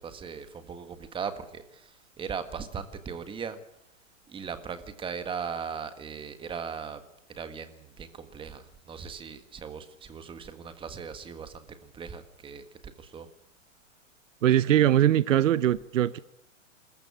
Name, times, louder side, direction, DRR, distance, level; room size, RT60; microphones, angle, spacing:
voice 1, 0.0-3.6 4.3-7.0 7.3-13.3, right 6 dB, 15° right, 1.6 m, -38 dB
voice 2, 14.4-16.2, right 11 dB, 70° right, 0.9 m, -21 dB
25.0 x 14.5 x 8.4 m
hypercardioid pair, 140°, 39 cm